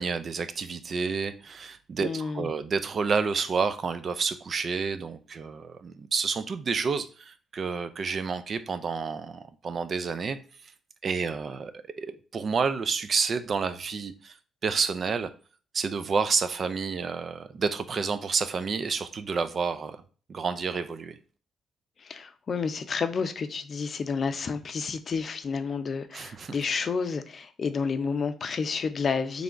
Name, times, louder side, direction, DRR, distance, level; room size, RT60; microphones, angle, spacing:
voice 1, 0.0-10.4 10.6-10.7 11.0-11.7 12.0-14.4 14.6-15.3 15.7-20.0 20.3-21.2 26.1-26.6, right 5 dB, 45° right, 0.5 m, -29 dB
voice 2, 2.0-2.5 22.0-29.4, left 5 dB, 45° left, 0.5 m, -30 dB
3.6 x 3.3 x 3.8 m
cardioid pair, 90°, 0 cm